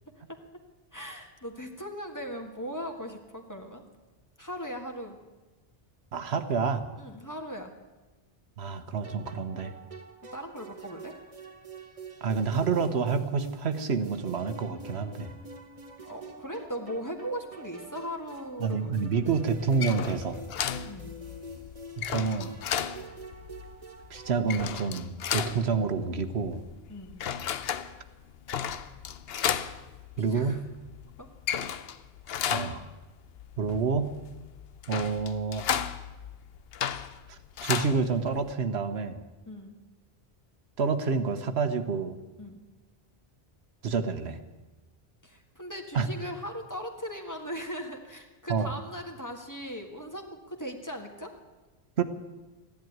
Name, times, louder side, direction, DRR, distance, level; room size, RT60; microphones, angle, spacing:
voice 1, 0.9-3.8 4.4-5.2 7.0-7.7 10.3-11.1 16.1-19.3 20.8-21.2 26.9-27.2 30.2-30.6 31.2-31.3 39.5-39.8 42.4-42.6 45.2-51.3, equal, 15° left, 3 dB, 1.6 m, -39 dB
voice 2, 6.1-6.9 8.6-9.7 12.2-15.3 18.6-20.4 22.1-22.5 24.1-26.6 30.2-30.6 32.5-32.9 33.6-34.1 34.9-35.8 37.3-39.2 40.8-42.2 43.8-44.4 45.9-46.1 48.5-48.7 52.0-52.1, right 5 dB, 90° right, 9 dB, 1.3 m, -28 dB
sound 1, 9.0-25.0, right 2 dB, 35° right, 1.2 m, -46 dB
sound 2, 19.6-38.5, left 8 dB, 70° left, 0.9 m, -35 dB
14.5 x 10.5 x 9.3 m, 1.2 s
omnidirectional pair, 1.1 m